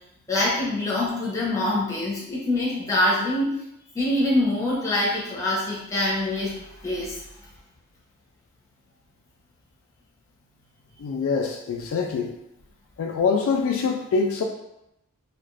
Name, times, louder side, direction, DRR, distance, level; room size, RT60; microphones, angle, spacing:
voice 1, 0.3-3.6 3.9-7.2, left 1 dB, 15° left, -6 dB, 0.8 m, -25 dB
voice 2, 11.0-12.3 13.0-14.4, left 5 dB, 65° left, 2 dB, 0.3 m, -24 dB
2.9 x 2.5 x 3.1 m, 0.84 s
head